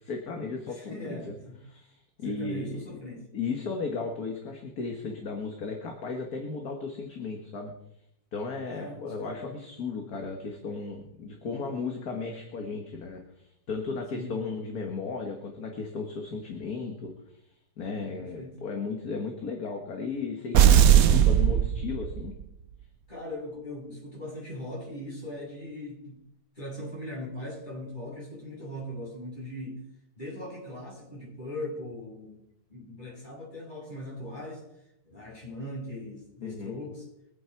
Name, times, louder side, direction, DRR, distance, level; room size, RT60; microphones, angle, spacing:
voice 1, 0.0-1.4 1.6-2.8 3.3-7.7 8.3-17.1 17.8-22.3 36.4-36.8, left 4 dB, 50° left, 2 dB, 2.0 m, -35 dB
voice 2, 0.7-1.6 2.2-3.2 8.6-9.5 14.1-14.4 18.2-18.6 23.1-26.2 26.6-29.8 30.2-32.4 32.7-34.6 35.0-37.1, left 1 dB, 25° left, -5 dB, 7.5 m, -39 dB
sound 1, 20.5-22.4, right 10 dB, 60° right, 1.0 m, -19 dB
23.5 x 8.7 x 4.6 m, 0.80 s
omnidirectional pair, 2.1 m